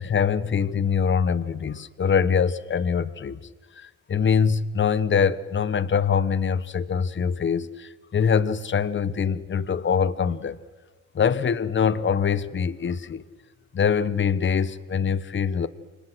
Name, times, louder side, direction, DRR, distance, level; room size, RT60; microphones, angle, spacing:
voice 1, 0.0-3.4 3.8-10.6 11.1-13.2 13.7-15.7, left 6 dB, 40° left, 1.2 m, -23 dB
29.5 x 24.5 x 6.3 m
cardioid pair, 90°, 30 cm